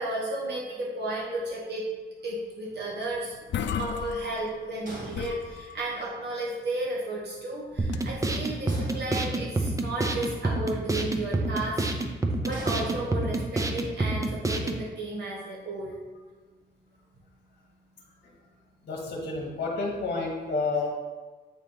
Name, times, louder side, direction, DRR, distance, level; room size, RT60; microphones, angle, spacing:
voice 1, 0.0-1.8 2.2-3.3 3.8-11.8 12.4-16.0, right 2 dB, 65° right, -4 dB, 1.4 m, -33 dB
sound 1, 3.0-3.1 3.3-4.8 5.1-6.1 7.8-8.3, left 8 dB, 75° left, 0.4 m, -35 dB
door metal locker or shed close hard slam rattle solid nice, 4.9-5.9 8.7-9.7 12.5-13.6, right 1 dB, 50° right, 1.9 m, -43 dB
sound 2, 7.8-14.8, right 2 dB, 15° right, 0.5 m, -28 dB
voice 2, 18.9-20.9, left 3 dB, 60° left, -2 dB, 1.3 m, -30 dB
8.3 x 3.4 x 4.4 m, 1.3 s
wide cardioid pair, 145°, 18 cm